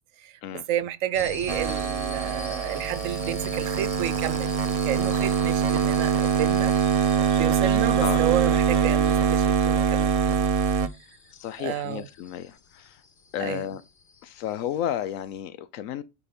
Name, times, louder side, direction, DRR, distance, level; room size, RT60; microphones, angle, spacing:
voice 1, 0.2-4.5 4.8-6.7 7.4-10.4 11.6-12.1 13.4-13.6, right 11 dB, 85° right, 1.0 m, -30 dB
sound 1, 1.1-15.4, left 5 dB, 45° left, 0.9 m, -44 dB
sound 2, 1.5-10.9, right 7 dB, 65° right, 0.3 m, -23 dB
voice 2, 11.3-13.0 13.3-13.8 14.2-16.0, left 11 dB, 90° left, 1.0 m, -32 dB
9.9 x 4.3 x 5.2 m
omnidirectional pair, 1.3 m